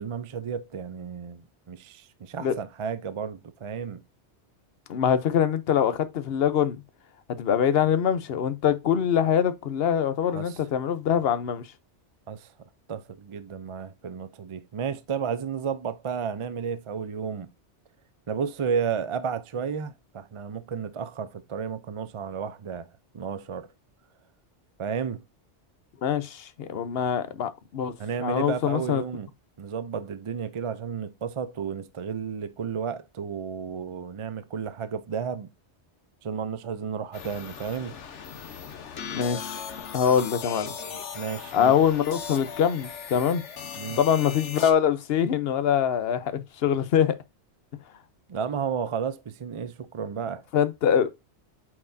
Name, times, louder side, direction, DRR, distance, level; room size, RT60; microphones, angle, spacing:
voice 1, 0.0-4.0 10.3-10.6 12.3-12.5 12.9-17.5 18.3-23.7 24.8-25.2 28.0-29.3 29.6-35.5 36.2-37.9 40.5-41.8 43.8-44.0 48.3-50.4, right 6 dB, 50° right, 0.4 m, -32 dB
voice 2, 4.9-6.8 7.4-11.6 26.0-27.9 28.2-29.0 39.1-40.7 41.5-43.4 44.0-47.2 50.5-51.1, left 8 dB, 60° left, 1.0 m, -24 dB
sound 1, 37.1-44.7, left 7 dB, 80° left, 1.3 m, -38 dB
8.5 x 4.5 x 2.6 m
omnidirectional pair, 1.2 m